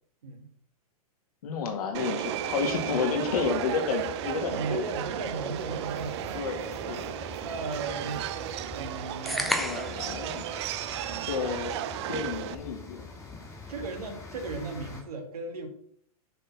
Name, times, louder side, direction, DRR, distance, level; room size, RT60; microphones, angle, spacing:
voice 1, 1.4-4.9 6.3-7.0 9.3-10.4 11.3-11.7 12.1-13.1, left 5 dB, 75° left, 3 dB, 2.0 m, -31 dB
Subway metro underground, 1.9-12.5, right 11 dB, 45° right, 0.5 m, -34 dB
sound 1, 2.2-15.0, left 4 dB, 15° left, 1.7 m, -46 dB
voice 2, 4.5-6.4 6.6-8.3 8.7-9.5 11.4-11.5 13.7-15.7, right 3 dB, 75° right, 3 dB, 2.1 m, -36 dB
sound 2, 9.3-10.1, equal, ahead, 0.6 m, -30 dB
6.6 x 4.1 x 5.8 m, 0.63 s
hypercardioid pair, 145°, 19 cm